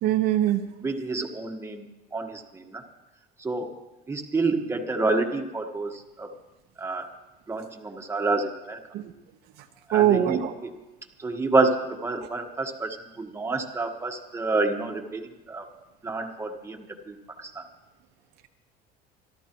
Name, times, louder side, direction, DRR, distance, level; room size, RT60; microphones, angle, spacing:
voice 1, 0.0-0.6 8.9-9.1 9.9-10.5, right 12 dB, 60° right, 5 dB, 1.1 m, -22 dB
voice 2, 0.8-2.8 3.4-3.7 4.1-6.3 6.8-7.1 7.5-8.8 9.9-10.7 11.2-15.7 16.0-17.6, right 3 dB, 15° right, 3 dB, 1.4 m, -28 dB
27.0 x 12.5 x 3.1 m, 1.1 s
cardioid pair, 130°, 19 cm